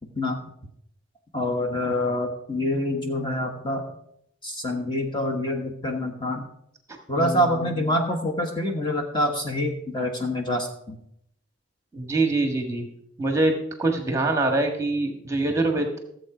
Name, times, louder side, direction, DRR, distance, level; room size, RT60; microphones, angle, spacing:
voice 1, 1.3-3.9 4.4-6.4 7.1-11.0, left 1 dB, 20° left, 3 dB, 1.2 m, -26 dB
voice 2, 7.2-7.7 11.9-12.9 13.2-13.5 13.8-16.0, right 2 dB, 15° right, 3 dB, 1.6 m, -24 dB
14.5 x 7.8 x 5.0 m, 0.75 s
head